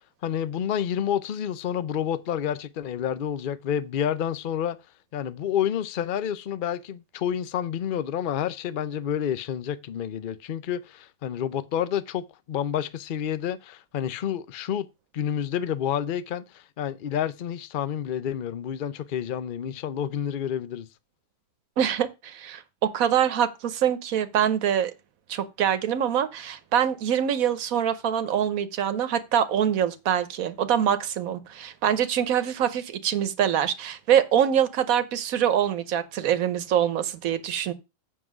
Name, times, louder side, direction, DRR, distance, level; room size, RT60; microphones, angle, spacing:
voice 1, 0.2-4.8 5.1-14.9 15.1-20.9, left 9 dB, 50° left, 0.7 m, -29 dB
voice 2, 21.8-24.9 25.3-37.7, right 9 dB, 90° right, 1.3 m, -24 dB
7.6 x 6.0 x 6.0 m
omnidirectional pair, 1.4 m